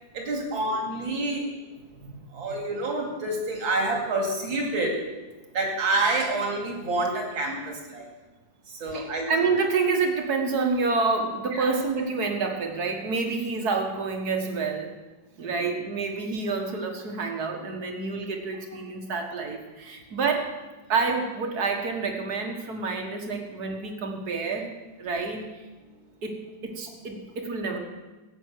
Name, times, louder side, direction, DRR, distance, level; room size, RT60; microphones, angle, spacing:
voice 1, 0.1-1.6 2.3-4.9 5.5-8.1 8.7-9.3 11.5-11.7 15.4-15.7, right 2 dB, 80° right, 1 dB, 3.3 m, -28 dB
voice 2, 2.0-2.5 8.9-15.0 15.4-20.5 20.9-24.7 25.0-25.5 26.2-27.8, right 4 dB, 55° right, 3 dB, 2.0 m, -28 dB
16.5 x 8.1 x 6.5 m, 1.2 s
omnidirectional pair, 2.1 m